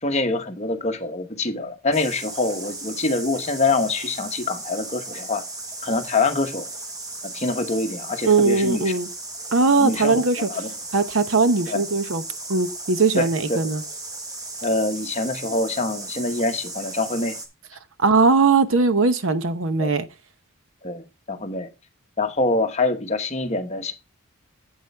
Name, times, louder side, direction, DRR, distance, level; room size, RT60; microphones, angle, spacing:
voice 1, 0.0-5.4 5.8-6.7 7.2-8.9 9.7-10.7 11.7-11.8 13.2-13.6 14.6-17.4 19.8-19.9 20.8-21.7 22.2-23.9, left 3 dB, 30° left, 1.0 m, -25 dB
sound 1, 1.9-17.5, right 2 dB, 15° right, 1.2 m, -36 dB
voice 2, 8.2-9.1 9.5-10.5 10.9-12.2 12.5-13.8 18.0-20.1, right 4 dB, 65° right, 0.8 m, -19 dB
8.3 x 8.2 x 3.3 m
head